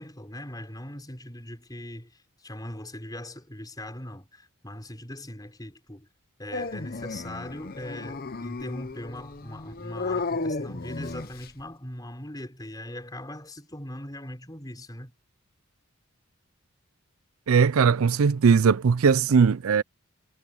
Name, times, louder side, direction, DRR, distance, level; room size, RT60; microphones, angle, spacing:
voice 1, 0.0-6.1 6.4-15.2, left 1 dB, 20° left, 5.3 m, -40 dB
Dog, 6.5-11.6, left 3 dB, 45° left, 0.8 m, -34 dB
voice 2, 17.5-19.8, right 6 dB, 80° right, 0.5 m, -19 dB
head